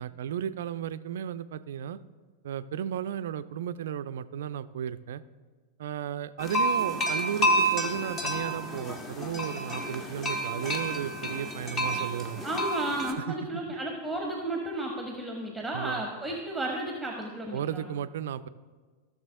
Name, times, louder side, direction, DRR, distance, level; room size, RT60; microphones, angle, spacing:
voice 1, 0.0-2.0 2.4-5.2 5.8-12.4 13.2-13.6 15.7-16.0 17.5-18.5, right 9 dB, 60° right, 14 dB, 0.3 m, -34 dB
sound 1, 6.4-13.1, right 1 dB, 25° left, 1.0 m, -30 dB
voice 2, 12.4-17.9, right 1 dB, ahead, 0 dB, 1.1 m, -33 dB
15.0 x 6.6 x 2.7 m, 1.4 s
figure-of-eight pair, 90°, 0 cm